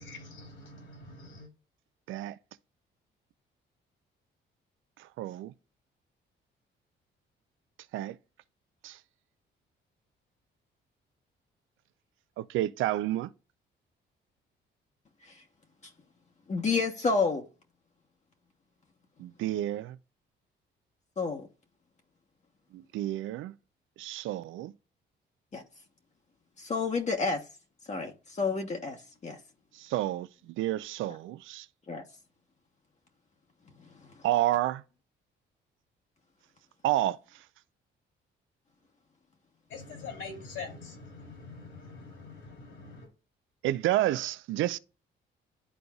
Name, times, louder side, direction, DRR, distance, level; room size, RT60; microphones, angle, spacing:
voice 1, 0.0-1.5 39.7-43.1, left 4 dB, 80° left, 3.1 m, -44 dB
voice 2, 5.0-5.5 7.9-8.2 8.8-9.0 12.4-13.3 19.2-20.0 22.7-23.5 24.0-24.7 29.7-31.7 34.2-34.8 36.8-37.4 43.6-44.8, right 14 dB, 80° right, 0.4 m, -30 dB
voice 3, 16.5-17.4 21.2-21.5 25.5-25.6 26.6-27.4 27.9-29.0 29.2-29.4 31.9-32.0 34.0-34.1, left 4 dB, 35° left, 1.0 m, -29 dB
11.0 x 3.9 x 2.3 m
cardioid pair, 90°, 20 cm